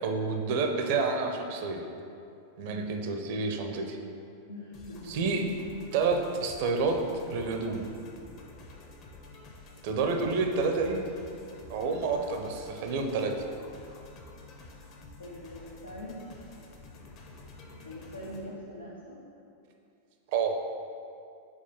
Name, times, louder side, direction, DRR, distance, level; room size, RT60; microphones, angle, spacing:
voice 1, 0.0-1.8 2.6-4.0 5.1-5.5 5.9-7.0 7.3-7.8 9.8-11.0 11.7-13.4 20.3-20.6, right 4 dB, 50° right, 4 dB, 0.6 m, -29 dB
voice 2, 4.5-5.2 15.2-16.3 17.8-19.2, equal, 85° left, -6 dB, 0.7 m, -43 dB
sound 1, 4.7-18.4, left 3 dB, 40° left, 0.8 m, -49 dB
4.8 x 4.3 x 5.4 m, 2.6 s
figure-of-eight pair, 90°, 0 cm